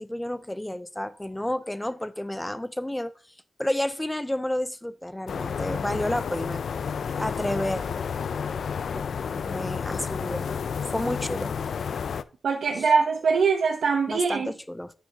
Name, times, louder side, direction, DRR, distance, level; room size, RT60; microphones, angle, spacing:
voice 1, 0.0-3.1 3.6-6.6 7.2-7.8 8.9-9.0 9.5-10.6 10.9-11.6 14.1-14.9, left 1 dB, 5° left, 0.4 m, -30 dB
sound 1, 5.3-12.2, left 6 dB, 70° left, 0.3 m, -31 dB
voice 2, 12.4-14.5, right 5 dB, 90° right, 0.7 m, -23 dB
10.0 x 6.1 x 2.7 m
wide cardioid pair, 165°, 0 cm